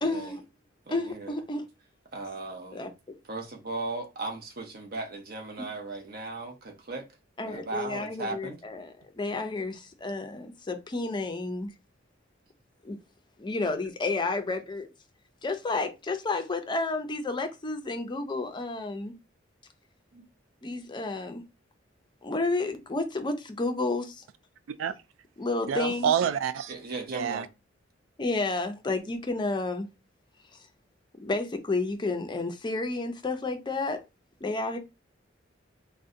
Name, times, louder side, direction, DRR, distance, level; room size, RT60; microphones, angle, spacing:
voice 1, 0.0-0.4 0.9-1.6 2.7-2.9 5.6-5.7 7.4-11.7 12.8-13.0 13.4-14.9 15.4-19.1 20.6-21.4 22.2-24.2 25.4-26.1 28.2-29.9 31.2-34.0 34.4-34.8, left 3 dB, 25° left, 0.4 m, -31 dB
voice 2, 0.9-1.3 2.1-2.9 3.3-7.1 7.4-8.6 20.1-20.3 26.7-27.5, right 3 dB, 50° right, 0.7 m, -37 dB
voice 3, 25.7-26.7 27.1-27.5, right 8 dB, 85° right, 0.3 m, -27 dB
2.6 x 2.1 x 3.6 m
head